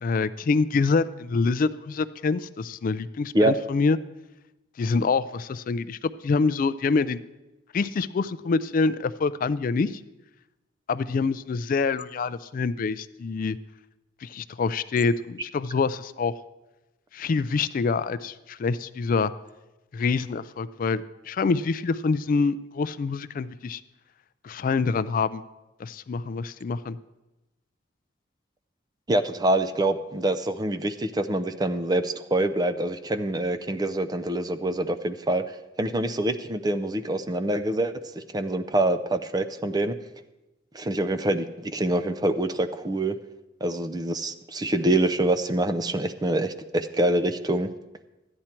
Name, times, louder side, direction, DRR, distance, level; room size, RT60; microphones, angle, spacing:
voice 1, 0.0-4.0 4.8-7.2 7.7-10.0 10.9-13.6 14.2-16.3 17.1-19.3 19.9-23.8 24.4-25.4 25.8-27.0, left 4 dB, 45° left, 15 dB, 0.3 m, -26 dB
voice 2, 29.1-35.4 35.8-39.9 40.7-43.2 43.6-47.7, right 1 dB, 20° right, 10 dB, 0.5 m, -25 dB
13.0 x 9.7 x 4.4 m, 1.0 s
head